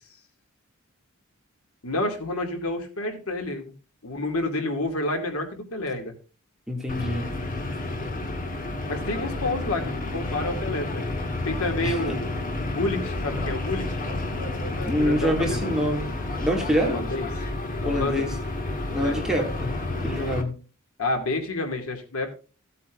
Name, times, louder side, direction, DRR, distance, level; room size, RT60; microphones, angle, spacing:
voice 1, 1.8-3.7 4.0-6.1 8.9-11.0 11.4-14.0 14.9-15.9 16.8-17.3 17.8-18.3 19.0-19.2 21.0-22.3, left 2 dB, 80° left, 4 dB, 2.7 m, -29 dB
voice 2, 6.7-7.3 11.8-12.2 14.8-16.1 16.4-17.0 17.8-18.3 18.9-20.6, equal, 5° right, 0 dB, 2.5 m, -26 dB
sound 1, 6.9-20.4, left 2 dB, 40° left, 1.9 m, -30 dB
16.0 x 8.4 x 2.6 m, 0.34 s
head